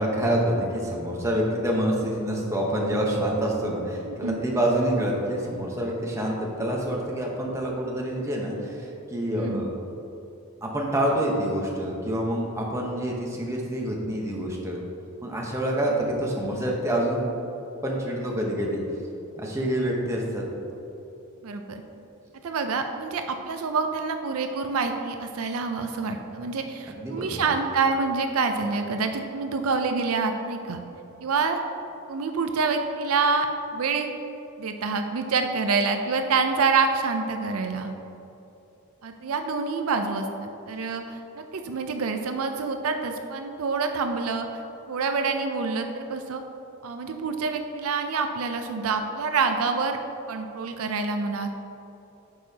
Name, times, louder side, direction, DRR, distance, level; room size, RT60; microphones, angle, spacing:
voice 1, 0.0-9.7 10.6-14.8 15.2-17.3 17.8-18.8 19.4-20.4 26.9-27.5, right 1 dB, 15° right, -2 dB, 0.9 m, -27 dB
voice 2, 4.0-4.4 9.4-9.6 21.4-21.8 22.4-30.8 31.2-31.6 32.1-34.1 34.6-37.9 39.0-44.6 44.9-46.4 46.8-50.0 50.3-51.5, right 4 dB, 75° right, 6 dB, 0.5 m, -27 dB
8.4 x 6.4 x 2.8 m, 2.9 s
head